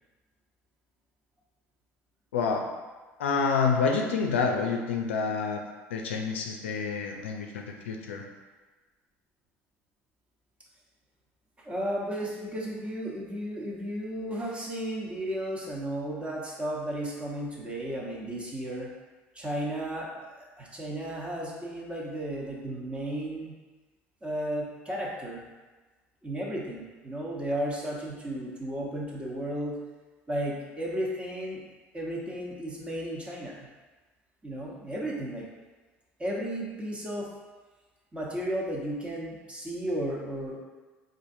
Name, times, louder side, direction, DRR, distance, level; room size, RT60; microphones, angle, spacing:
voice 1, 2.3-2.7 3.2-5.6 5.9-8.2, left 5 dB, 85° left, 2 dB, 0.4 m, -28 dB
voice 2, 11.6-18.9 19.3-23.6 24.2-25.4 26.2-29.8 30.3-31.6 31.9-33.7 34.4-35.5 36.2-37.3 38.1-40.6, right 1 dB, 20° right, -4 dB, 1.0 m, -34 dB
4.2 x 2.6 x 2.7 m, 1.3 s
hypercardioid pair, 70°, 6 cm